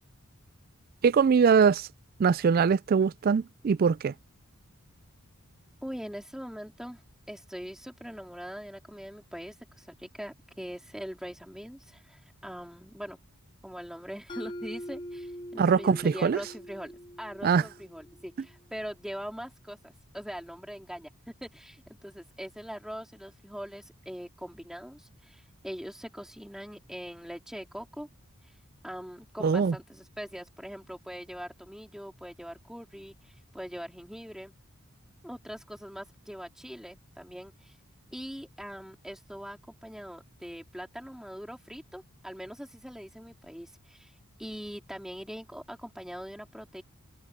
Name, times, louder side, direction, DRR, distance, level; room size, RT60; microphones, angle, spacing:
voice 1, 1.0-1.9 2.2-4.1 15.6-16.4 17.4-17.6 29.4-29.7, right 6 dB, 40° right, 0.3 m, -22 dB
voice 2, 5.8-7.0 7.3-13.2 13.6-16.9 17.2-21.1 21.4-28.1 28.8-34.5 35.2-37.8 38.1-44.1 44.4-46.8, equal, ahead, 3.7 m, -42 dB
Mallet percussion, 14.3-18.3, equal, 20° left, 4.4 m, -43 dB
head